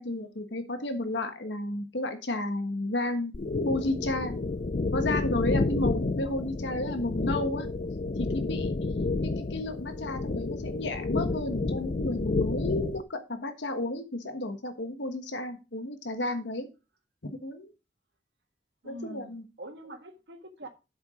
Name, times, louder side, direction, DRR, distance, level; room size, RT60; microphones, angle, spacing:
voice 1, 0.0-3.3 3.6-4.4 4.9-7.7 8.2-8.8 9.2-16.7 17.2-17.7 18.8-19.4, left 1 dB, 85° left, 1.3 m, -32 dB
sound 1, 3.3-13.0, left 3 dB, 45° left, 0.5 m, -30 dB
voice 2, 18.8-20.7, right 1 dB, 75° right, 1.5 m, -44 dB
8.0 x 7.1 x 4.9 m
head